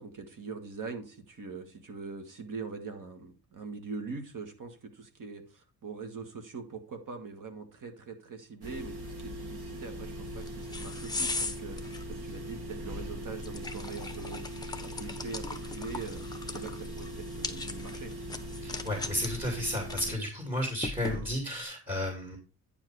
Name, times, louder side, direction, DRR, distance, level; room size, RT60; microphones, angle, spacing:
voice 1, 0.0-11.8 12.1-14.4 14.8-16.2 16.5-18.1, right 4 dB, 55° right, 6 dB, 1.8 m, -42 dB
sound 1, 8.6-20.1, equal, 70° right, 2.3 m, -41 dB
sound 2, 10.2-21.6, left 3 dB, 10° left, 0.9 m, -40 dB
voice 2, 18.6-22.4, left 1 dB, 15° right, 1 dB, 2.4 m, -33 dB
9.5 x 5.0 x 4.7 m, 0.33 s
cardioid pair, 115°, 39 cm